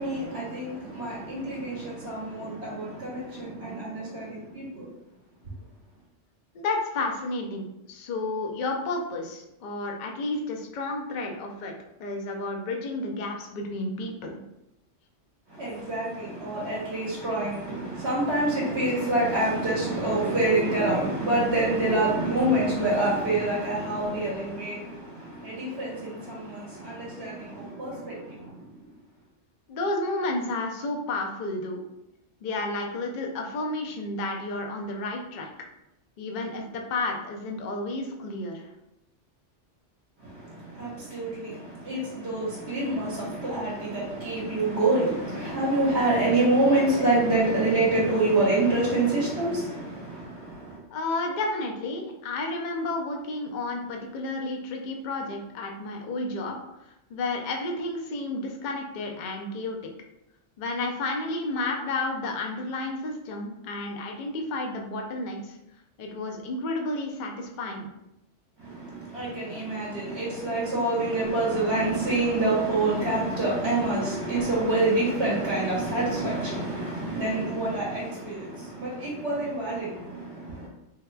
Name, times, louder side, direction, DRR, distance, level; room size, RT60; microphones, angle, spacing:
voice 1, 0.0-4.9 15.5-28.6 40.2-50.8 68.6-80.7, right 2 dB, 60° right, 1.2 m, -27 dB
voice 2, 6.5-11.7 12.0-14.4 29.7-31.8 32.4-35.5 36.2-38.7 50.9-56.6 56.8-59.8 60.6-65.6 66.0-67.9, left 2 dB, 60° left, 0.5 m, -31 dB
3.3 x 2.8 x 2.2 m
omnidirectional pair, 1.2 m